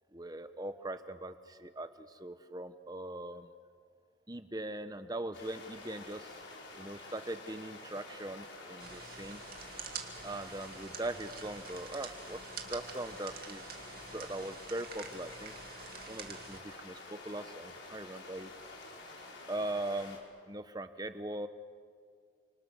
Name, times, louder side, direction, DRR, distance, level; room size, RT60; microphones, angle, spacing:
voice 1, 0.1-3.5 4.3-6.4 6.8-9.4 10.2-15.5 16.1-18.5 19.5-20.2 20.4-21.5, right 1 dB, 20° right, 9 dB, 1.2 m, -41 dB
sound 1, 5.3-20.2, left 2 dB, 75° left, 5.3 m, -49 dB
sound 2, 8.8-16.6, right 7 dB, 50° right, 2.3 m, -47 dB
30.0 x 26.5 x 6.4 m, 2.2 s
head